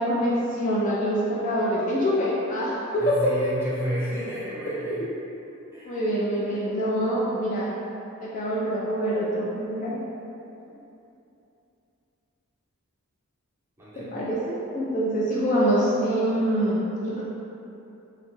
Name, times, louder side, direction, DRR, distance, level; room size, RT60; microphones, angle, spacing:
voice 1, 0.0-3.3 5.9-7.7 8.2-10.0 14.0-17.2, equal, 35° left, -7 dB, 0.3 m, -25 dB
voice 2, 3.0-5.0 5.7-6.6 13.8-14.1, equal, 10° right, -11 dB, 0.7 m, -33 dB
2.8 x 2.2 x 3.0 m, 2.8 s
head